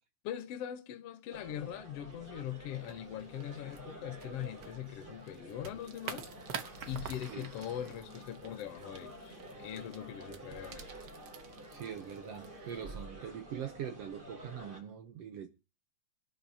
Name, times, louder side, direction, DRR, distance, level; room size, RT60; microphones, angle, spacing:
voice 1, 0.2-11.0, left 11 dB, 65° left, 1.8 m, -42 dB
sound 1, 1.3-14.8, right 1 dB, 35° right, 3.3 m, -50 dB
sound 2, 2.8-13.0, right 7 dB, 85° right, 0.9 m, -49 dB
sound 3, 6.0-8.4 12.3-12.8, right 1 dB, 55° right, 7.1 m, -53 dB
voice 2, 10.3-10.6 11.7-15.5, right 9 dB, 70° right, 1.7 m, -43 dB
23.0 x 11.5 x 2.8 m
omnidirectional pair, 3.4 m